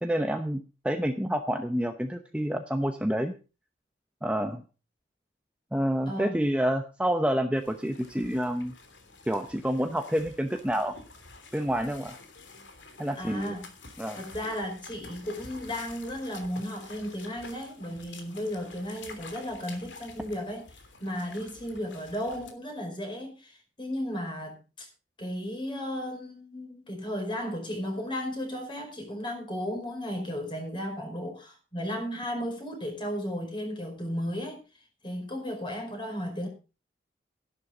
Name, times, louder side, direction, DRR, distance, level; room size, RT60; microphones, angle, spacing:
voice 1, 0.0-3.3 4.2-4.6 5.7-8.7 9.3-10.9 11.5-12.2 13.0-13.5 14.0-14.2, equal, 5° right, 0.8 m, -28 dB
voice 2, 6.1-6.4 13.1-13.7 14.1-24.9 25.2-34.6 35.0-36.5, equal, 25° left, 5.0 m, -34 dB
sound 1, 7.5-22.5, left 3 dB, 75° left, 3.1 m, -49 dB
13.0 x 11.5 x 5.0 m
head